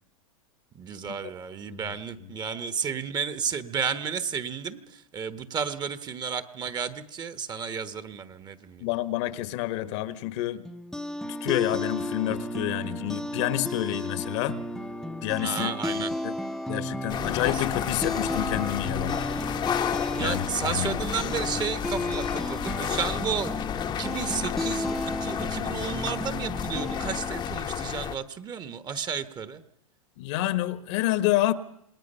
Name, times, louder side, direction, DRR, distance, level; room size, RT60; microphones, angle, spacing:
voice 1, 0.7-8.9 15.4-16.1 17.4-17.6 20.1-23.6 24.0-29.6, right 6 dB, 20° right, 1.4 m, -32 dB
voice 2, 8.8-10.6 11.2-14.6 15.2-16.3 16.7-19.2 20.2-21.0 30.2-31.5, left 15 dB, 50° left, 1.4 m, -29 dB
sound 1, 10.6-27.6, left 1 dB, ahead, 0.9 m, -33 dB
sound 2, 17.1-28.2, left 9 dB, 25° left, 1.1 m, -32 dB
27.5 x 19.5 x 5.6 m
hypercardioid pair, 120°, 18 cm